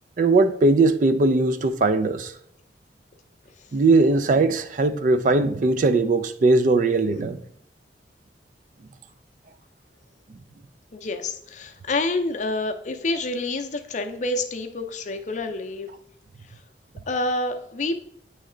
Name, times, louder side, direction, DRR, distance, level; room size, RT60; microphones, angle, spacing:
voice 1, 0.2-2.3 3.7-7.4, right 3 dB, 45° right, 0.3 m, -19 dB
voice 2, 10.9-15.9 16.5-16.6 17.1-18.0, left 2 dB, 45° left, 0.5 m, -28 dB
8.8 x 3.1 x 3.7 m
head